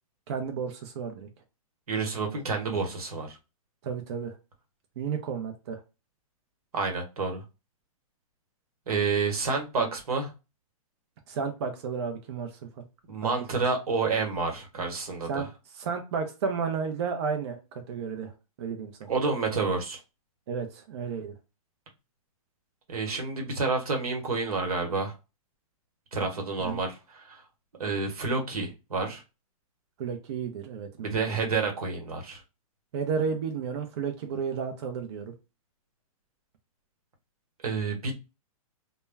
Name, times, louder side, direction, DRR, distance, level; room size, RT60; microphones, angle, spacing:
voice 1, 0.3-1.3 3.8-4.3 5.0-5.8 11.3-12.5 13.2-13.6 15.3-15.5 15.7-18.3 18.6-19.1 20.5-21.3 26.6-26.8 30.0-31.4 32.9-35.3, right 6 dB, 45° right, 5 dB, 0.5 m, -32 dB
voice 2, 1.9-3.4 6.7-7.4 8.9-10.3 13.1-15.5 19.1-20.0 22.9-25.1 26.1-27.4 27.8-29.2 31.0-32.4 37.6-38.3, right 4 dB, 90° right, 2 dB, 1.0 m, -29 dB
2.1 x 2.1 x 3.3 m, 0.28 s
hypercardioid pair, 155°, 19 cm